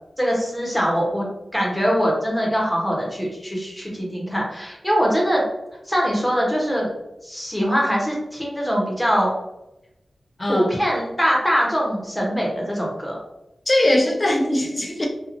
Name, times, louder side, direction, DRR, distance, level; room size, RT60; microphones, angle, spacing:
voice 1, 0.2-1.3 1.5-5.4 5.9-6.9 7.2-9.3 10.5-13.2, equal, 5° left, 0.9 m, -22 dB
voice 2, 10.4-10.7 13.7-15.1, left 1 dB, 30° left, 0.5 m, -20 dB
2.9 x 2.3 x 2.5 m
wide cardioid pair, 105°, 0 cm